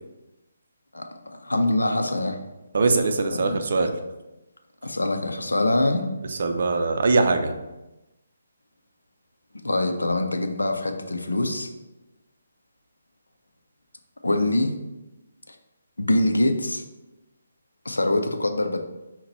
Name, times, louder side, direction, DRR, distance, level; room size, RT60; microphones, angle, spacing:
voice 1, 1.4-2.4 3.3-3.6 4.8-6.1 9.6-11.7 14.2-14.7 15.5-15.6 16.0-16.8 17.9-18.8, left 1 dB, 75° left, 5 dB, 0.5 m, -24 dB
voice 2, 2.7-3.9 6.2-7.5, right 3 dB, 50° right, 6 dB, 0.5 m, -22 dB
5.7 x 2.2 x 4.1 m, 1.0 s
figure-of-eight pair, 140°, 0 cm